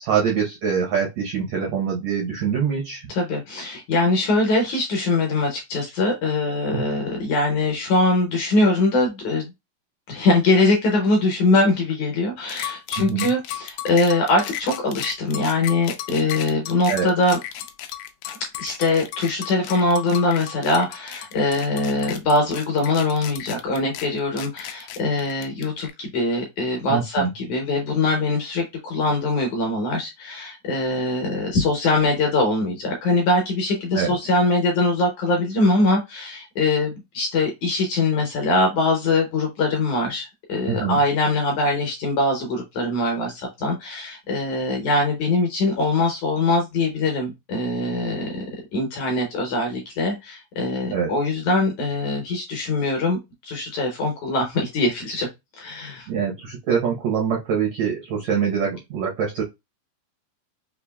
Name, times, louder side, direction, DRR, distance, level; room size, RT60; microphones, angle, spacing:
voice 1, 0.0-3.1 13.0-13.3 16.9-17.1 26.9-27.3 33.9-34.1 40.7-41.0 50.9-51.1 56.1-59.4, right 7 dB, 80° right, -1 dB, 1.5 m, -24 dB
voice 2, 3.1-9.4 10.1-17.4 18.3-48.5 48.7-53.2 53.4-55.3 55.6-56.1, left 2 dB, 70° left, 2 dB, 1.9 m, -22 dB
sound 1, 12.5-25.9, left 12 dB, 85° left, 1.8 m, -34 dB
5.8 x 2.5 x 2.2 m, 0.21 s
omnidirectional pair, 4.3 m